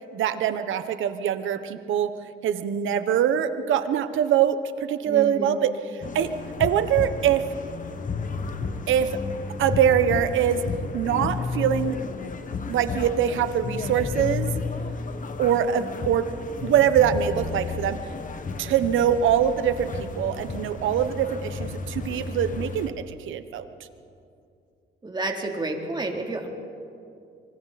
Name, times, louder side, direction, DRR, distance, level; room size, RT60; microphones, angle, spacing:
voice 1, 0.1-2.1 2.4-6.3 6.6-7.5 8.9-9.2 9.6-10.6 10.9-12.0 12.7-14.6 15.4-16.3 16.6-18.0 18.6-23.7, right 9 dB, 80° right, 10 dB, 1.2 m, -23 dB
voice 2, 5.0-5.6 25.0-26.5, right 2 dB, 20° right, 1 dB, 3.2 m, -30 dB
sound 1, 6.0-22.9, left 4 dB, 40° left, 1.5 m, -32 dB
26.5 x 25.0 x 4.3 m, 2.5 s
cardioid pair, 90°, 20 cm